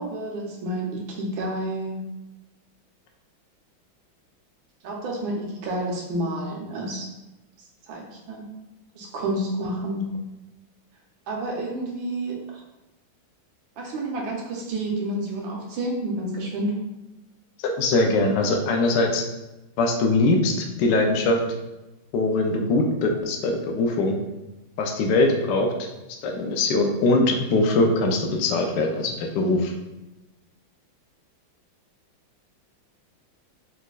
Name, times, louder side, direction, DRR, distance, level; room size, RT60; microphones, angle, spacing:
voice 1, 0.0-2.0 4.8-7.1 7.9-8.5 9.0-10.0 11.3-12.6 13.8-16.7, right 1 dB, 75° right, -1 dB, 1.6 m, -29 dB
voice 2, 17.8-19.2 19.8-21.4 22.1-24.2 24.8-25.7 26.2-29.7, left 2 dB, 75° left, 2 dB, 1.0 m, -22 dB
4.3 x 4.1 x 2.3 m, 1.0 s
omnidirectional pair, 2.2 m